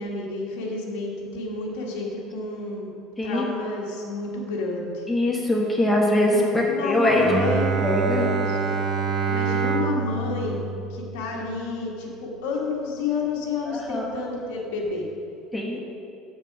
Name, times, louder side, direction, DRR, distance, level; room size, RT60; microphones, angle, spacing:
voice 1, 0.0-2.9 3.2-5.1 6.2-7.7 8.2-8.6 9.3-10.6 10.9-15.1 15.7-15.8, left 3 dB, 80° left, -3 dB, 1.9 m, -30 dB
voice 2, 5.1-7.2 7.8-8.3 13.7-14.1 15.5-15.8, left 1 dB, 10° left, -1 dB, 1.4 m, -22 dB
Bowed string instrument, 7.1-12.4, right 5 dB, 30° right, 0.9 m, -27 dB
9.3 x 7.8 x 4.8 m, 2.6 s
cardioid pair, 135°, 0 cm